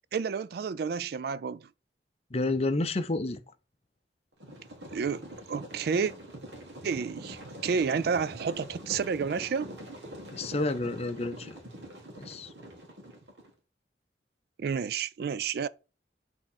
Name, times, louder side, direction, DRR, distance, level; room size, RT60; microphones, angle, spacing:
voice 1, 0.1-1.7 4.9-6.1 6.8-9.7 14.6-15.7, right 6 dB, 60° right, 0.3 m, -30 dB
voice 2, 2.3-3.4 10.3-11.6 12.2-12.5, left 2 dB, 35° left, 0.7 m, -30 dB
sound 1, 4.4-13.5, right 1 dB, 90° right, 2.0 m, -44 dB
6.4 x 3.7 x 4.2 m
head